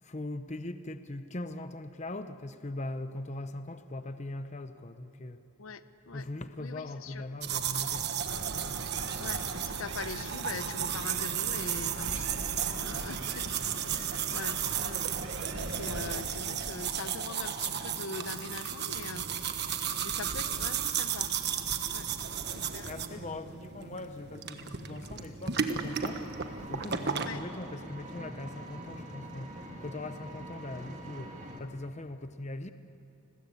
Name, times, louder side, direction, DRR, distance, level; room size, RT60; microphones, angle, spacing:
voice 1, 0.0-5.4 6.1-8.3 13.2-13.4 22.1-22.2 22.9-32.7, left 2 dB, 30° left, 9 dB, 0.8 m, -41 dB
voice 2, 5.6-6.2 6.6-7.2 8.9-13.6 13.9-15.1 15.5-19.3 20.0-21.3 21.9-22.1 22.5-22.9 27.3-27.4, left 4 dB, 65° left, 12 dB, 0.9 m, -42 dB
sound 1, 7.4-27.3, right 8 dB, 50° right, 1.4 m, -34 dB
sound 2, 8.2-16.3, right 2 dB, 70° right, 1.6 m, -42 dB
Vehicle, 25.9-31.6, right 1 dB, 35° right, 2.4 m, -44 dB
30.0 x 21.0 x 8.6 m, 2.7 s
head